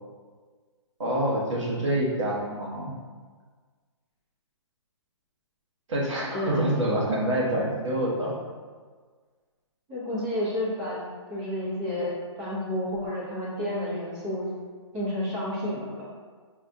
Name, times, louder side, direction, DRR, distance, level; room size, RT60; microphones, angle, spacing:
voice 1, 1.0-2.9 5.9-8.4, right 1 dB, 75° right, -4 dB, 1.1 m, -26 dB
voice 2, 6.3-6.6 9.9-11.0 11.3-14.5 14.9-16.0, left 1 dB, 10° right, -7 dB, 0.7 m, -30 dB
5.5 x 2.3 x 2.6 m, 1.5 s
hypercardioid pair, 175°, 16 cm